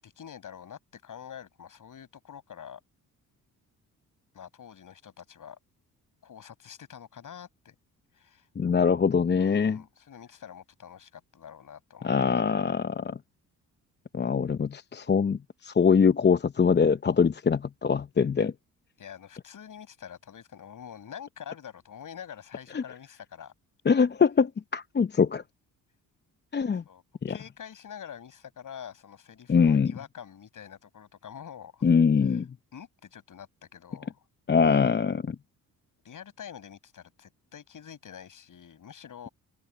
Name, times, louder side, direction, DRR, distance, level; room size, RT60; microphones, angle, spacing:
voice 1, 0.0-2.8 4.3-5.6 6.2-7.8 8.1-8.5 9.4-12.3 18.4-18.5 19.0-23.5 26.9-27.0 27.3-31.9 32.3-32.4 32.7-34.1 36.0-39.3, left 8 dB, 55° left, 7.3 m, -46 dB
voice 2, 8.6-9.8 12.0-13.2 14.1-18.5 22.7-22.8 23.9-25.4 26.5-26.8 27.2-27.3 29.5-29.9 31.8-32.5 34.5-35.4, left 6 dB, 30° left, 0.8 m, -23 dB
open air
supercardioid pair, 60°, 37 cm